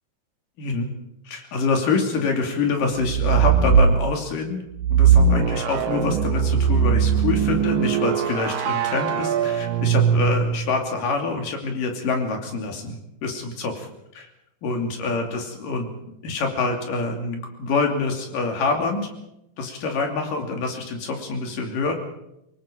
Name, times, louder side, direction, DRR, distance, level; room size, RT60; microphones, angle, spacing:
voice 1, 0.6-0.9 1.3-4.6 4.9-13.9 14.1-14.3 14.6-15.9 16.2-19.1 19.6-22.0, left 4 dB, 70° left, 3 dB, 4.3 m, -26 dB
sound 1, 3.0-4.0 4.8-10.8, right 7 dB, 75° right, 2.8 m, -20 dB
25.0 x 22.0 x 5.2 m, 0.86 s
omnidirectional pair, 4.1 m